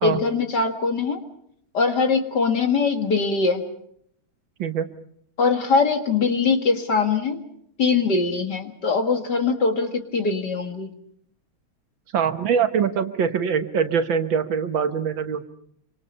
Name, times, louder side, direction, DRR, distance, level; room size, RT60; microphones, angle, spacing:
voice 1, 0.0-1.2 1.7-3.6 5.4-7.4 7.8-10.9, left 4 dB, 50° left, 6 dB, 2.4 m, -22 dB
voice 2, 12.1-15.5, right 7 dB, 65° right, 9 dB, 1.8 m, -23 dB
27.0 x 25.0 x 5.5 m, 0.68 s
omnidirectional pair, 2.4 m